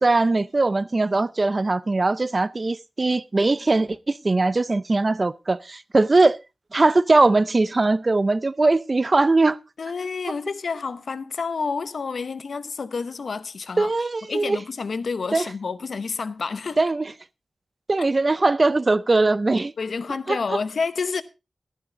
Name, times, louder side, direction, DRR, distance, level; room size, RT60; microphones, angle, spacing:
voice 1, 0.0-6.4 6.7-9.6 13.8-14.6 15.3-15.4 16.8-17.1 17.9-19.7 20.3-20.4, right 3 dB, 35° right, 0.5 m, -20 dB
voice 2, 9.8-13.9 14.3-16.8 18.0-18.1 19.8-21.2, left 5 dB, 75° left, 0.8 m, -29 dB
13.0 x 11.0 x 3.9 m
wide cardioid pair, 100°, 0 cm